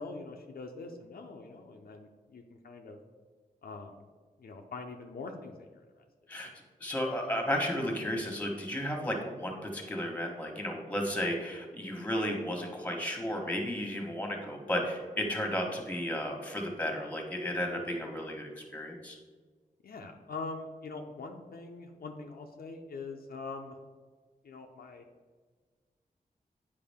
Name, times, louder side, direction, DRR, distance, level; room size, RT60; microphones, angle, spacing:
voice 1, 0.0-3.0 3.6-3.9 4.4-5.8 19.8-23.8 24.4-25.0, left 3 dB, 80° left, 2 dB, 0.7 m, -43 dB
voice 2, 6.8-19.2, equal, 10° left, 2 dB, 1.4 m, -33 dB
8.7 x 4.8 x 3.6 m, 1.4 s
wide cardioid pair, 85°, 15 cm